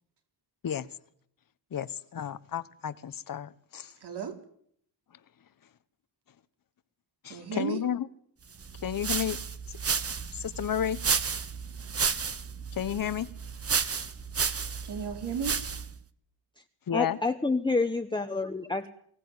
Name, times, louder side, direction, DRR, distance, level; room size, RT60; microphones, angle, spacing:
voice 1, 0.6-1.0 1.7-4.0 5.1-5.2 7.2-8.1 8.8-9.4 9.7-9.8 10.3-11.0 12.7-13.3 16.9-17.2, left 9 dB, 50° left, 15 dB, 1.2 m, -32 dB
voice 2, 4.0-4.4 7.3-7.8 14.8-15.6, right 6 dB, 65° right, 5 dB, 4.5 m, -34 dB
sound 1, 8.6-16.0, right 5 dB, 35° right, 1.3 m, -32 dB
voice 3, 16.9-18.9, left 3 dB, 10° left, 6 dB, 1.2 m, -28 dB
23.5 x 18.0 x 9.8 m, 0.67 s
wide cardioid pair, 140°, 43 cm